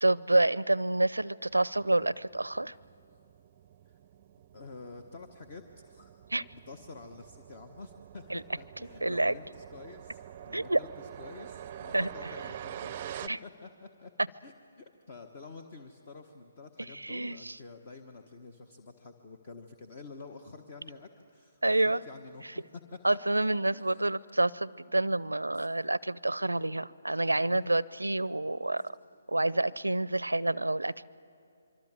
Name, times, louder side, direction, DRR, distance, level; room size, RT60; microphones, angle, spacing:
voice 1, 0.0-2.7 6.3-6.4 8.3-8.4 9.0-9.4 10.5-10.8 11.9-12.1 13.3-13.4 16.9-17.6 21.6-22.0 23.0-28.9 29.3-31.0, right 2 dB, 85° right, 22 dB, 0.5 m, -28 dB
sound 1, 1.5-13.3, right 10 dB, 30° right, 0.6 m, -46 dB
voice 2, 4.5-6.1 6.5-14.1 14.4-22.6 23.1-23.2 23.7-24.2 25.5-25.7 27.5-27.7, left 4 dB, 40° left, 6 dB, 1.2 m, -49 dB
25.5 x 24.0 x 7.6 m, 2.7 s
figure-of-eight pair, 140°, 0 cm